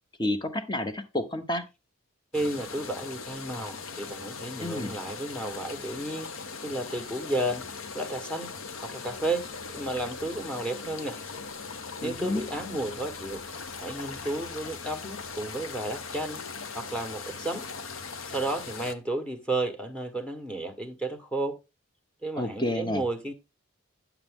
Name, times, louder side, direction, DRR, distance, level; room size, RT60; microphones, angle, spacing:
voice 1, 0.2-1.6 4.6-4.9 12.0-12.4 22.4-23.0, left 1 dB, 20° left, 1.0 m, -30 dB
sound 1, 2.3-18.9, left 5 dB, 70° left, 0.9 m, -40 dB
voice 2, 2.3-7.7 7.9-8.6 8.8-11.2 12.0-13.5 13.8-16.4 16.7-17.7 18.3-21.6 22.2-23.3, right 2 dB, 5° left, 1.3 m, -32 dB
10.5 x 7.2 x 3.6 m
head